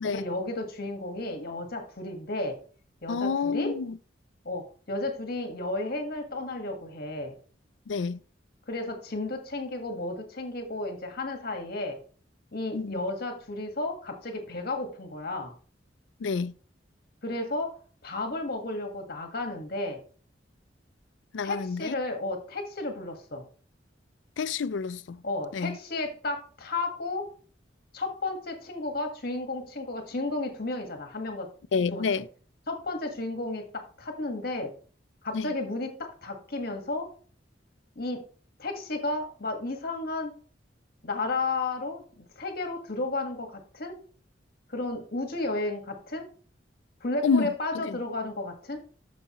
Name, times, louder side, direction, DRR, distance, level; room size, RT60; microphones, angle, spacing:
voice 1, 0.0-2.6 3.0-3.8 4.4-7.3 8.7-12.0 12.5-15.5 17.2-17.7 18.0-20.0 21.4-23.4 25.2-27.3 27.9-31.5 31.9-32.1 32.7-34.7 35.2-37.1 37.9-38.2 38.6-40.3 41.0-44.0 44.7-46.3 47.0-48.8, left 2 dB, 55° left, 1.6 m, -33 dB
voice 2, 3.1-4.0 7.9-8.2 12.7-13.0 16.2-16.5 21.3-22.0 24.4-25.2 25.5-25.8 31.7-32.2 35.3-35.5 47.2-47.5 47.9-48.0, left 5 dB, 85° left, 0.4 m, -28 dB
9.3 x 6.6 x 3.0 m
head